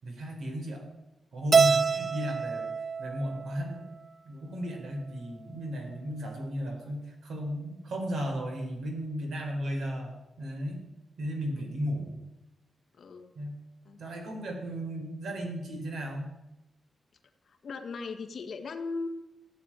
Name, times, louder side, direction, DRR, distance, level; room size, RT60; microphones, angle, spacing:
voice 1, 0.0-0.8 1.3-2.7 3.0-3.9 4.2-10.9 11.2-12.3 13.3-13.5 14.0-16.3, equal, 70° right, 3 dB, 4.5 m, -35 dB
Keyboard (musical), 1.5-3.9, right 5 dB, 30° right, 0.4 m, -26 dB
voice 2, 13.0-13.3 13.8-14.0 17.4-19.1, left 4 dB, 50° left, 5 dB, 1.6 m, -38 dB
15.5 x 9.8 x 8.9 m, 0.94 s
wide cardioid pair, 160°, 0 cm